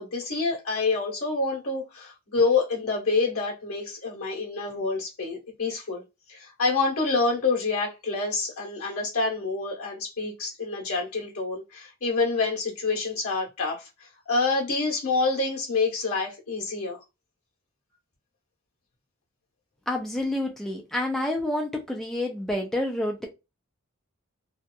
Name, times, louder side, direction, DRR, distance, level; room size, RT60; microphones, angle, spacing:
voice 1, 0.0-6.0 6.3-17.0, left 3 dB, 85° left, 1.1 m, -27 dB
voice 2, 19.9-23.3, left 1 dB, ahead, 0.3 m, -28 dB
2.7 x 2.3 x 2.3 m
head